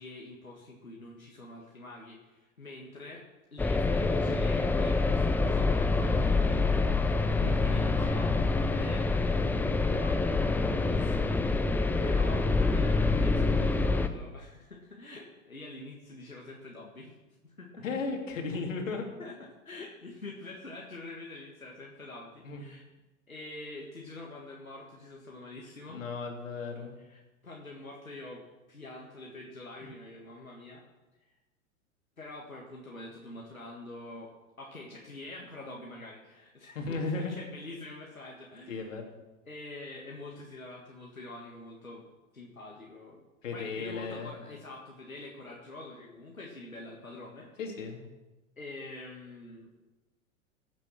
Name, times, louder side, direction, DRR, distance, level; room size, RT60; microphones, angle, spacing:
voice 1, 0.0-3.2 3.5-7.2 7.5-8.3 8.7-9.1 9.9-11.7 12.0-17.1 17.4-17.8 19.2-22.8 23.3-26.0 27.0-28.4 28.7-30.8 32.2-34.3 34.6-38.8 39.5-42.0 42.3-43.2 43.5-47.5 48.6-49.7, left 2 dB, 90° left, -2 dB, 1.8 m, -45 dB
sound 1, 3.6-14.1, left 3 dB, 5° left, 0.5 m, -26 dB
voice 2, 17.8-19.1 22.4-22.6 25.9-27.0 36.7-37.3 38.7-39.0 43.4-44.3 47.6-48.1, left 4 dB, 65° left, 2 dB, 2.9 m, -35 dB
15.5 x 7.5 x 6.2 m, 1.1 s
figure-of-eight pair, 95°, 41 cm